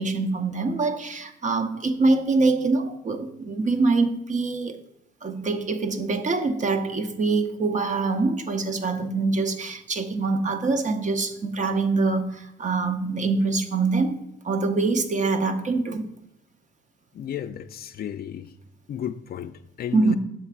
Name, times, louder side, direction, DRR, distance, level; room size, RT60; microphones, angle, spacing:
voice 1, 0.0-4.8 5.2-14.2 14.4-16.0 19.9-20.2, right 3 dB, 40° right, 0.7 m, -24 dB
voice 2, 17.1-18.5 18.9-20.2, left 10 dB, 50° left, 0.4 m, -34 dB
7.2 x 3.3 x 5.9 m
cardioid pair, 90°, 20 cm